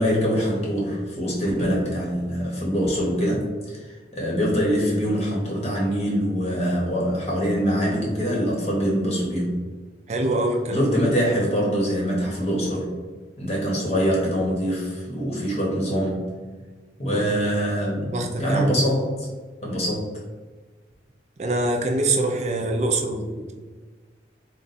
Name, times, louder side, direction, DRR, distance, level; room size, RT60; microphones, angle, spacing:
voice 1, 0.0-9.6 10.7-12.9 13.4-16.3 17.0-19.3 19.6-20.1, equal, 35° left, -3 dB, 0.9 m, -24 dB
voice 2, 10.1-10.9 17.1-17.3 18.1-18.7 21.4-23.5, right 2 dB, 40° right, 2 dB, 0.5 m, -24 dB
3.9 x 2.3 x 4.1 m, 1.4 s
head